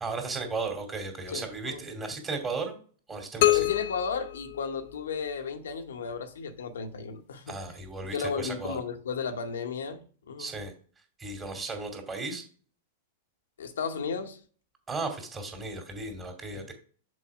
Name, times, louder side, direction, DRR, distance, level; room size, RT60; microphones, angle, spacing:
voice 1, 0.0-2.7 3.1-3.7 7.5-8.8 10.4-10.7 11.2-12.4 14.9-16.7, right 3 dB, 20° right, 2.6 m, -35 dB
voice 2, 1.3-1.8 3.5-7.5 8.1-10.5 13.6-14.4 16.5-16.7, left 5 dB, 80° left, 1.0 m, -34 dB
sound 1, 3.4-5.3, left 16 dB, 55° left, 0.6 m, -27 dB
6.4 x 4.6 x 4.8 m
hypercardioid pair, 110°, 0 cm